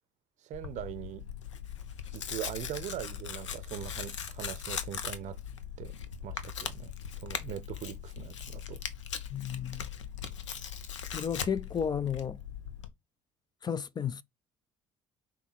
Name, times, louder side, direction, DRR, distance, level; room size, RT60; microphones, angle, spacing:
voice 1, 0.4-1.3 2.1-5.4 5.8-5.9 6.2-6.9 7.2-8.8, right 12 dB, 55° right, 0.6 m, -41 dB
Tearing, 0.5-12.9, left 8 dB, 90° left, 0.5 m, -40 dB
voice 2, 9.3-9.9 11.1-12.4 13.6-14.2, left 7 dB, 30° left, 0.4 m, -33 dB
5.5 x 2.1 x 4.1 m
hypercardioid pair, 60°, 15 cm